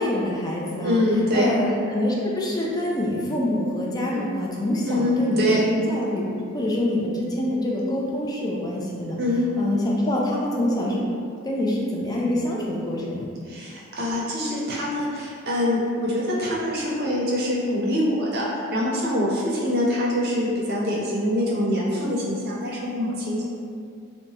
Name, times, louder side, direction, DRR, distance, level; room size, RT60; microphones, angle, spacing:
voice 1, 0.0-1.0 1.3-6.2 6.5-9.2 9.6-11.0 11.4-13.3, left 1 dB, 20° left, -4 dB, 0.4 m, -25 dB
voice 2, 0.8-1.5 4.1-4.3 4.9-5.6 9.1-9.5 13.5-23.5, left 1 dB, 50° right, -5 dB, 0.6 m, -24 dB
2.8 x 2.2 x 2.7 m, 2.2 s
head